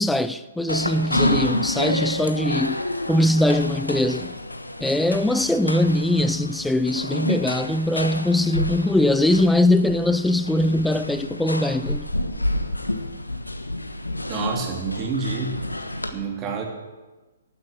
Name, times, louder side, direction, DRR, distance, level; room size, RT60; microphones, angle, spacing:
voice 1, 0.0-2.8 3.1-4.3 4.8-12.0, left 1 dB, 5° left, 0.5 m, -21 dB
sound 1, 0.7-16.1, left 1 dB, 80° left, 1.3 m, -29 dB
voice 2, 14.3-15.6 16.1-16.6, right 4 dB, 20° right, 2.7 m, -28 dB
14.5 x 11.5 x 6.4 m
figure-of-eight pair, 125°, 0 cm